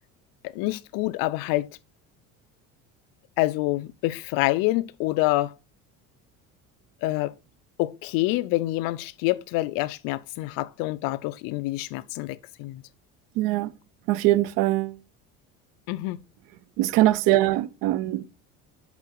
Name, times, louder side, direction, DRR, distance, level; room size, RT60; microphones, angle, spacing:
voice 1, 0.4-1.7 3.4-5.5 7.0-7.3 7.8-12.8 15.9-16.2, left 18 dB, 70° left, 0.5 m, -27 dB
voice 2, 13.4-13.7 14.1-15.0 16.8-18.2, right 16 dB, 70° right, 0.7 m, -22 dB
8.4 x 3.9 x 4.5 m
cardioid pair, 150°, 35 cm